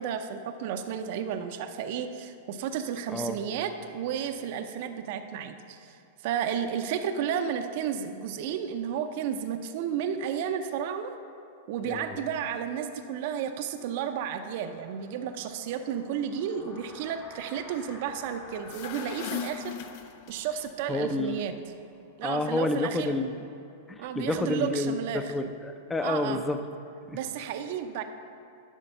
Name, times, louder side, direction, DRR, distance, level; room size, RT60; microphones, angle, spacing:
voice 1, 0.0-11.1 11.7-19.8 20.3-21.5 22.2-23.1 24.0-25.3 26.0-26.4 27.1-28.0, right 8 dB, 55° right, 8 dB, 0.6 m, -32 dB
voice 2, 11.8-12.2 20.9-21.4 22.2-23.5 23.9-26.6 27.1-27.2, left 2 dB, 10° left, 8 dB, 0.6 m, -29 dB
sound 1, 13.4-22.1, left 2 dB, 30° left, 2.4 m, -51 dB
sound 2, 18.5-20.7, left 9 dB, 55° left, 0.5 m, -38 dB
11.0 x 4.5 x 6.7 m, 2.7 s
hypercardioid pair, 105°, 0 cm